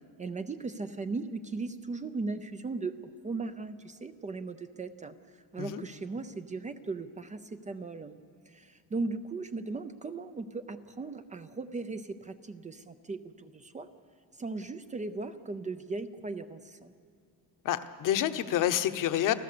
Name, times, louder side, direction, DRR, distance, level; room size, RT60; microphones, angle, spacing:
voice 1, 0.2-8.2 8.5-13.9 14.4-16.9, right 3 dB, 20° right, 9 dB, 0.5 m, -38 dB
voice 2, 17.6-19.3, left 11 dB, 55° left, 10 dB, 1.1 m, -28 dB
29.5 x 15.5 x 6.8 m, 2.3 s
cardioid pair, 150°, 38 cm